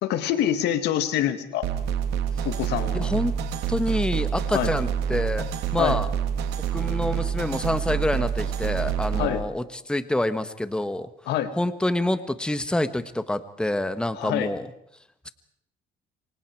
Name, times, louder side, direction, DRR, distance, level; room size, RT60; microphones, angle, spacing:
voice 1, 0.0-1.7 2.4-3.1 4.5-4.7 5.8-6.0 9.2-9.4 11.3-11.5 14.2-14.5, left 11 dB, 80° left, 10 dB, 2.1 m, -26 dB
sound 1, 1.6-9.3, right 8 dB, 80° right, 3.0 m, -27 dB
voice 2, 2.9-3.3 3.7-5.4 5.7-6.1 6.7-11.1 11.6-14.7, left 1 dB, 5° left, 11 dB, 1.4 m, -27 dB
28.5 x 24.5 x 4.7 m, 0.70 s
cardioid pair, 110°, 17 cm